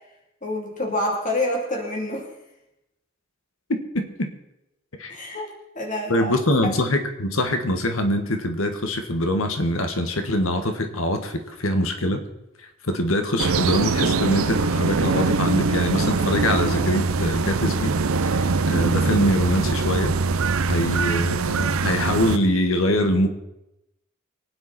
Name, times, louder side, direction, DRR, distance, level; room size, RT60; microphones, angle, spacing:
voice 1, 0.4-2.3 5.1-6.3 6.6-6.7, left 1 dB, 35° left, 0 dB, 3.1 m, -27 dB
voice 2, 3.7-4.3 5.0-5.2 6.1-12.2 12.6-17.9 18.2-20.1 20.6-23.3, left 1 dB, 75° left, 6 dB, 1.5 m, -24 dB
sound 1, 13.4-22.4, right 4 dB, 80° right, 0.7 m, -23 dB
24.5 x 9.6 x 4.3 m, 0.89 s
head